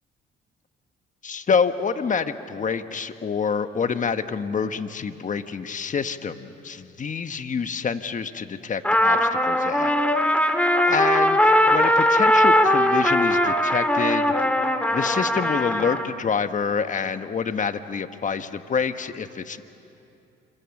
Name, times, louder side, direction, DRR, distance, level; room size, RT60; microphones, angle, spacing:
voice 1, 1.2-10.0 10.8-14.3 14.9-19.6, left 6 dB, 40° left, 10 dB, 1.2 m, -27 dB
Trumpet, 8.8-16.1, left 1 dB, 5° left, 2.1 m, -20 dB
28.5 x 26.5 x 7.2 m, 2.8 s
cardioid pair, 90°, 20 cm